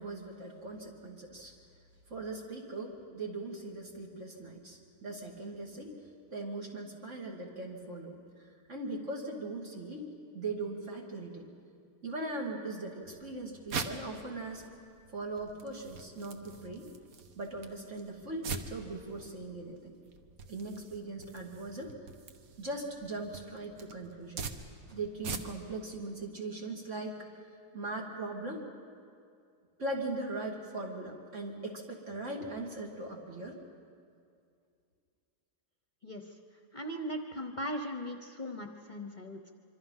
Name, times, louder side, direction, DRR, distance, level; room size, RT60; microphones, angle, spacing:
voice 1, 0.0-1.5 2.1-5.9 6.3-10.0 10.3-11.5 12.0-14.7 15.1-16.9 17.3-20.0 20.5-21.9 22.6-24.4 24.9-27.3 27.7-28.6 29.8-33.6, right 2 dB, 55° right, 0 dB, 2.9 m, -40 dB
sound 1, 13.0-25.8, right 5 dB, 70° right, 1.5 m, -44 dB
voice 2, 36.0-36.3 36.7-39.5, equal, 35° left, 5 dB, 1.0 m, -39 dB
25.5 x 25.0 x 5.6 m, 2.4 s
omnidirectional pair, 1.6 m